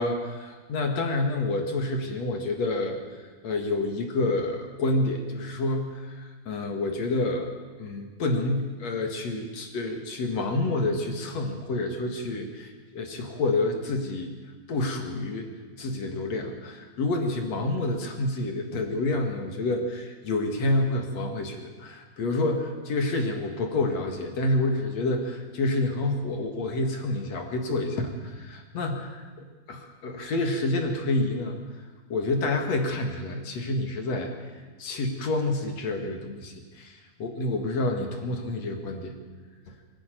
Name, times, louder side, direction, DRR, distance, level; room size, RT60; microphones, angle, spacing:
voice 1, 0.0-3.0 3.4-7.5 7.8-14.4 14.7-15.5 15.8-29.3 29.7-31.5 32.1-34.3 34.8-39.1 39.7-39.8, left 2 dB, 50° left, 3 dB, 2.7 m, -28 dB
23.5 x 12.0 x 9.2 m, 1.4 s
omnidirectional pair, 4.2 m